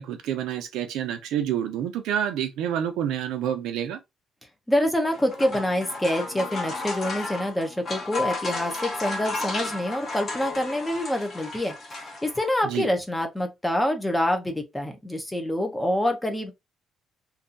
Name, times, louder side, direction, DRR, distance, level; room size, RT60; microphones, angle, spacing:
voice 1, 0.0-4.0 12.6-12.9, right 10 dB, 90° right, 0.5 m, -28 dB
voice 2, 4.7-11.7 12.2-16.5, left 1 dB, 10° left, 0.5 m, -26 dB
sound 1, 5.0-12.6, left 3 dB, 40° left, 1.1 m, -33 dB
2.6 x 2.3 x 2.5 m
cardioid pair, 135°, 0 cm